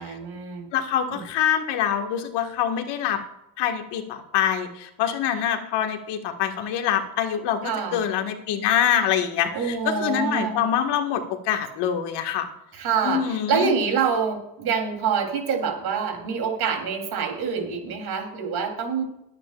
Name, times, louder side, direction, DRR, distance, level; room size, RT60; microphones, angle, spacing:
voice 1, 0.0-0.7 1.1-1.2 7.6-8.0 9.5-10.6 12.7-19.0, right 6 dB, 60° right, 3 dB, 3.6 m, -26 dB
voice 2, 0.7-3.2 3.6-12.5 13.0-13.7, left 9 dB, 70° left, 5 dB, 1.9 m, -25 dB
21.5 x 9.4 x 2.5 m, 0.85 s
supercardioid pair, 80°, 43 cm